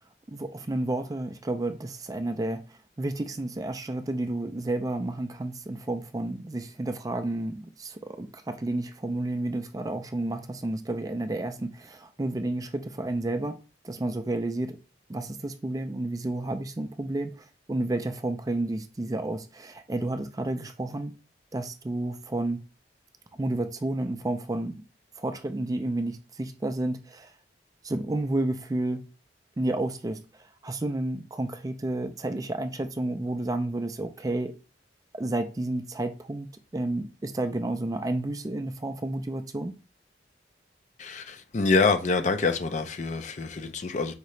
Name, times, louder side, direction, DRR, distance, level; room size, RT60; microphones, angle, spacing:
voice 1, 0.3-2.6 3.0-13.6 13.8-14.8 15.1-21.1 21.5-22.6 23.4-24.8 25.2-27.3 27.8-29.0 29.6-30.2 30.6-34.5 35.1-36.5 36.7-39.7, right 2 dB, 20° right, 0.4 m, -31 dB
voice 2, 41.0-44.1, left 4 dB, 45° left, 0.5 m, -26 dB
5.0 x 2.8 x 3.1 m
head